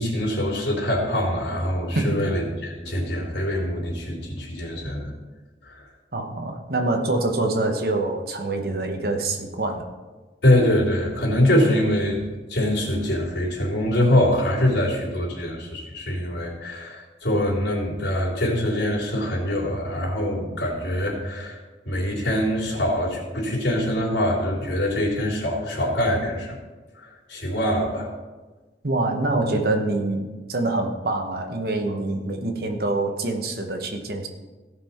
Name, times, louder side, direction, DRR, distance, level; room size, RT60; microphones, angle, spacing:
voice 1, 0.0-5.1 5.7-5.8 10.4-12.2 12.5-21.6 21.9-26.6 27.0-28.1, left 1 dB, 75° left, -4 dB, 3.5 m, -24 dB
voice 2, 6.1-9.9 28.8-34.3, right 2 dB, 55° right, 4 dB, 1.1 m, -25 dB
16.5 x 5.8 x 4.4 m, 1.3 s
head